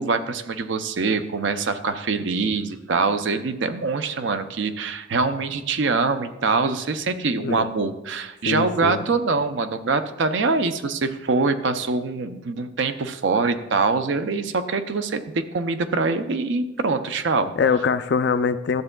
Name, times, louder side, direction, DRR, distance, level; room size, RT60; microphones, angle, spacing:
voice 1, 0.0-17.5, right 4 dB, 65° right, 10 dB, 0.5 m, -24 dB
voice 2, 8.4-9.0 17.6-18.8, left 5 dB, 55° left, 12 dB, 0.4 m, -23 dB
12.0 x 7.7 x 2.2 m, 1.0 s
head